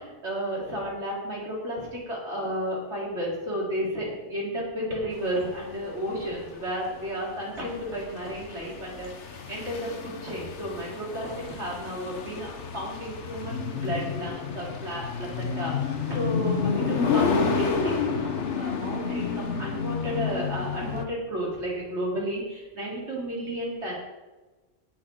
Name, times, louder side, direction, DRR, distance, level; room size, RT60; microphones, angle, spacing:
voice 1, 0.0-9.1 9.5-23.9, equal, 75° right, -5 dB, 4.2 m, -32 dB
sound 1, 5.2-21.0, left 5 dB, 85° left, 1.4 m, -30 dB
17.5 x 7.9 x 3.9 m, 1.2 s
omnidirectional pair, 1.2 m